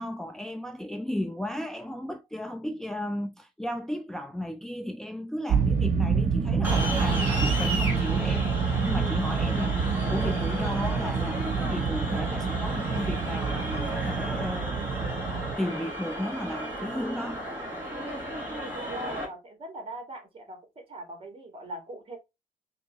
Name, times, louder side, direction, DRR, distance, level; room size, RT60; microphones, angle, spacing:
voice 1, 0.0-9.8 10.1-17.4, left 1 dB, 5° left, 0.4 m, -34 dB
sound 1, 5.5-15.6, right 5 dB, 75° right, 0.8 m, -27 dB
sound 2, 6.6-19.3, right 1 dB, 15° right, 2.5 m, -34 dB
voice 2, 18.5-22.2, right 1 dB, 40° right, 1.9 m, -41 dB
4.3 x 3.1 x 2.9 m
cardioid pair, 120°, 14 cm